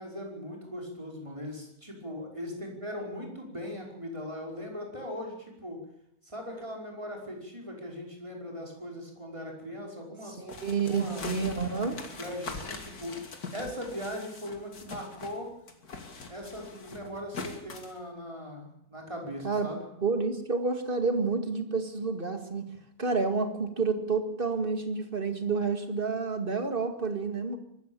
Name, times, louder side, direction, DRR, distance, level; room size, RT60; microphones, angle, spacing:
voice 1, 0.0-5.8 6.2-10.4 10.9-11.3 12.2-13.2 13.5-15.5 16.3-19.9, left 1 dB, 20° right, 0 dB, 5.5 m, -39 dB
voice 2, 10.4-12.0 19.4-19.7 20.0-22.6 23.0-27.6, right 4 dB, 35° right, 8 dB, 2.3 m, -29 dB
sound 1, 10.5-15.4 15.7-18.0, left 4 dB, 85° left, 2.8 m, -42 dB
23.5 x 14.0 x 8.9 m, 0.75 s
omnidirectional pair, 1.6 m